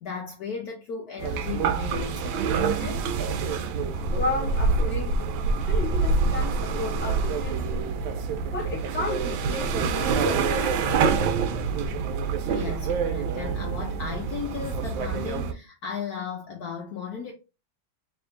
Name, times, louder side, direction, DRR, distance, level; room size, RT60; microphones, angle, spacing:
voice 1, 0.0-3.0 12.4-17.3, left 6 dB, 65° left, 1.0 m, -36 dB
sound 1, 1.2-15.5, right 5 dB, 80° right, 1.3 m, -26 dB
voice 2, 4.1-7.8 8.5-11.0, left 3 dB, 5° left, 1.0 m, -33 dB
3.4 x 3.0 x 3.6 m
omnidirectional pair, 2.2 m